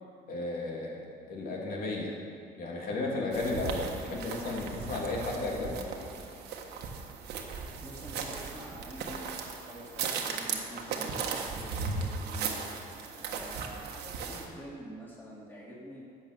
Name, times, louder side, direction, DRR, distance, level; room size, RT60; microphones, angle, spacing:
voice 1, 0.3-1.0 1.3-2.2 2.6-5.8, left 2 dB, 60° left, -2 dB, 3.0 m, -34 dB
sound 1, 3.3-14.5, right 5 dB, 75° right, 1.5 m, -37 dB
voice 2, 7.8-12.6 13.1-16.0, right 1 dB, 10° left, -6 dB, 3.1 m, -46 dB
12.0 x 8.1 x 6.9 m, 2.4 s
cardioid pair, 110°, 17 cm